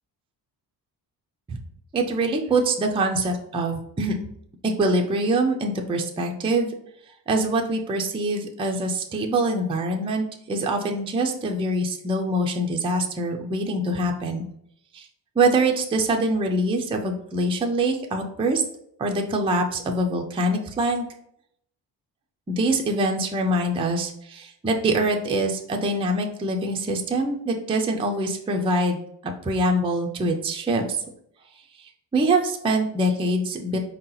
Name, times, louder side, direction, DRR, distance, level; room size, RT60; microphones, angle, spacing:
voice 1, 1.9-4.1 4.6-6.7 7.3-14.5 14.9-15.1 15.4-18.6 19.0-21.0 22.5-29.0 29.4-31.0 32.1-33.8, right 2 dB, 15° right, 2 dB, 0.3 m, -24 dB
4.6 x 2.8 x 3.8 m, 0.70 s
wide cardioid pair, 170°, 43 cm